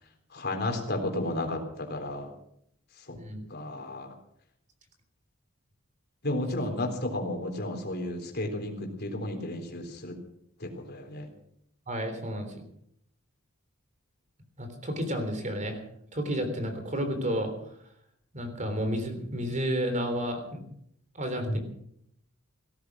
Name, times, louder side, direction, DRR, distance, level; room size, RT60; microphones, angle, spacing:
voice 1, 0.3-2.3 3.1-3.2 3.5-4.1 6.2-10.2 10.6-11.3 21.4-21.6, left 1 dB, 50° left, 4 dB, 3.7 m, -33 dB
voice 2, 11.9-12.6 14.6-15.8 16.1-17.5 18.3-20.6 21.1-21.6, equal, 35° right, 7 dB, 3.6 m, -31 dB
17.5 x 13.5 x 6.2 m, 0.72 s
head